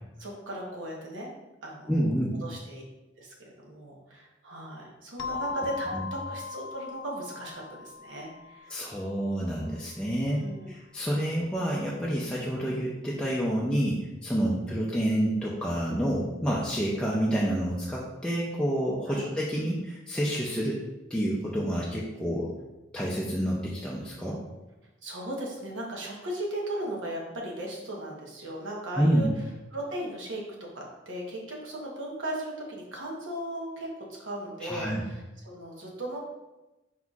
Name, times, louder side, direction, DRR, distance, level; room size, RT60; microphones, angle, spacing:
voice 1, 0.2-1.3 1.6-1.9 2.4-2.8 3.2-8.8 10.4-10.7 19.1-19.3 25.0-29.3 29.7-30.4 30.7-36.2, right 1 dB, 85° right, -2 dB, 1.0 m, -37 dB
voice 2, 1.9-2.4 5.3-5.4 5.9-6.1 8.7-20.8 21.1-22.5 22.9-24.4 29.0-29.3 34.6-35.0, equal, 5° left, -6 dB, 0.4 m, -28 dB
sound 1, 5.2-9.6, left 5 dB, 85° left, 0.4 m, -39 dB
4.6 x 4.1 x 2.4 m, 1.0 s
head